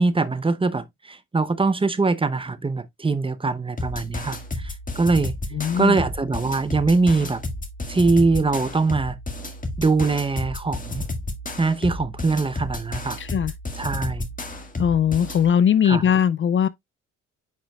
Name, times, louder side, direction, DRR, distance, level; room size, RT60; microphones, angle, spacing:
voice 1, 0.0-5.4 5.8-7.4 7.9-9.2 9.8-11.0 11.6-13.2 13.7-14.3 15.8-16.0, right 3 dB, 15° right, 0.8 m, -22 dB
sound 1, 3.8-15.5, left 2 dB, 25° left, 1.8 m, -32 dB
voice 2, 5.5-6.0 13.2-13.5 14.8-16.7, left 8 dB, 40° left, 0.5 m, -20 dB
9.2 x 5.0 x 2.3 m
cardioid pair, 90°, 30 cm